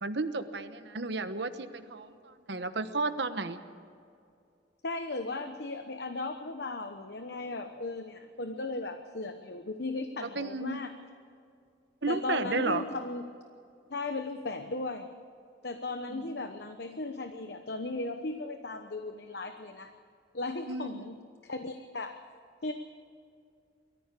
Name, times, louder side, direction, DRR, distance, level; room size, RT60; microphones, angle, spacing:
voice 1, 0.0-3.6 10.2-10.8 12.0-12.8 16.1-16.3 20.7-21.1, right 3 dB, 65° right, 10 dB, 1.1 m, -33 dB
voice 2, 4.8-10.9 12.1-13.2 13.9-15.1 15.6-19.9 20.3-21.2 21.4-22.2 22.6-22.7, left 2 dB, 60° left, 7 dB, 1.0 m, -36 dB
22.5 x 14.5 x 8.4 m, 2.4 s
head